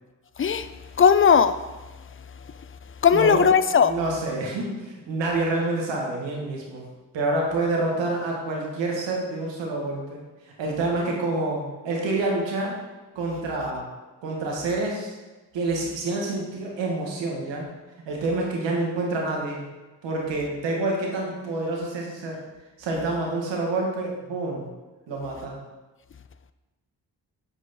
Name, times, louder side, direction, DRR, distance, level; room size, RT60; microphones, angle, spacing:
voice 1, 1.0-1.5 3.0-4.0, left 7 dB, 30° left, 13 dB, 0.5 m, -17 dB
voice 2, 3.1-3.4 3.8-6.8 7.1-10.2 10.6-12.7 13.1-13.8 14.2-15.1 15.5-17.7 18.0-19.6 20.0-22.4 22.8-24.7 25.1-25.5, right 2 dB, 85° right, -1 dB, 1.8 m, -27 dB
8.3 x 4.9 x 4.3 m, 1.2 s
supercardioid pair, 55°, 43 cm